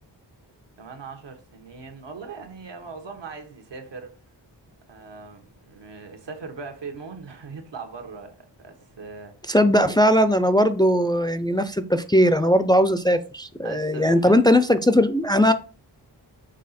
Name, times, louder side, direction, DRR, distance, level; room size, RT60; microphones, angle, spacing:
voice 1, 0.8-4.2 4.9-9.5 13.6-14.4, right 4 dB, 85° right, 1.4 m, -40 dB
voice 2, 9.5-15.5, equal, 10° left, 0.3 m, -19 dB
6.5 x 3.8 x 4.1 m
wide cardioid pair, 130°, 42 cm